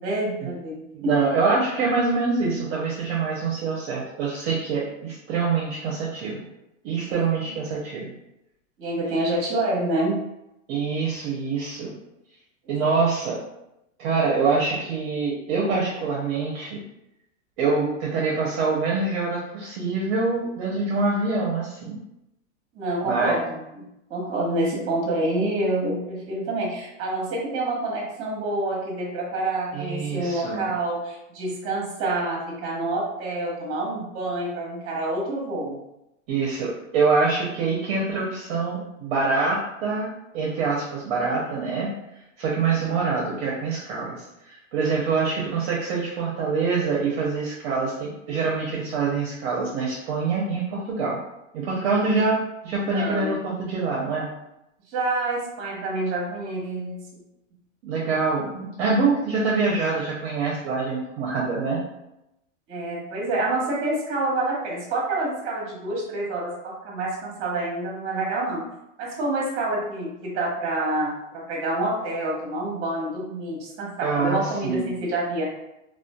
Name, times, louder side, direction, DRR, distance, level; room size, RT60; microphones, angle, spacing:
voice 1, 0.0-1.1 7.1-7.3 8.8-10.2 12.8-13.0 22.7-23.8 24.1-35.8 52.9-53.4 54.9-57.0 62.7-68.6 69.0-75.4, right 2 dB, 35° right, -3 dB, 1.0 m, -27 dB
voice 2, 0.9-6.5 6.8-8.1 10.7-11.9 12.7-13.4 14.0-16.8 17.6-22.0 23.0-23.4 29.7-30.7 36.3-41.9 42.4-51.2 51.5-54.3 57.8-61.8 74.0-74.9, right 4 dB, 50° right, -4 dB, 0.7 m, -25 dB
2.5 x 2.4 x 2.2 m, 0.87 s
hypercardioid pair, 120°, 39 cm